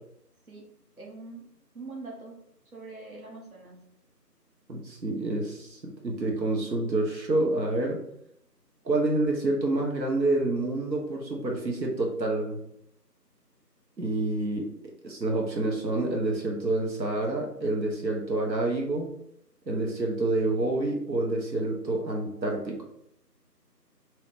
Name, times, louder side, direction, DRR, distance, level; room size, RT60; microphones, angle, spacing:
voice 1, 1.0-1.4 1.7-2.4 2.7-3.8, right 3 dB, 60° right, -3 dB, 0.9 m, -43 dB
voice 2, 4.7-8.0 8.8-12.6 14.0-14.7 15.0-19.1 19.7-22.8, right 2 dB, 85° right, 0 dB, 1.0 m, -28 dB
2.9 x 2.7 x 3.3 m, 0.75 s
figure-of-eight pair, 175°, 50 cm